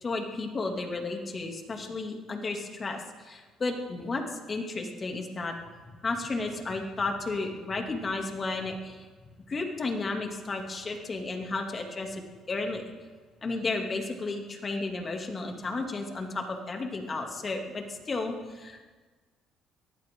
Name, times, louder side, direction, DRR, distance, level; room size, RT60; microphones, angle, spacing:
voice 1, 0.0-5.5 5.9-9.1 9.5-12.8 13.4-18.8, left 3 dB, 35° left, 2 dB, 2.6 m, -33 dB
22.0 x 15.0 x 3.8 m, 1.4 s
supercardioid pair, 80°, 0 cm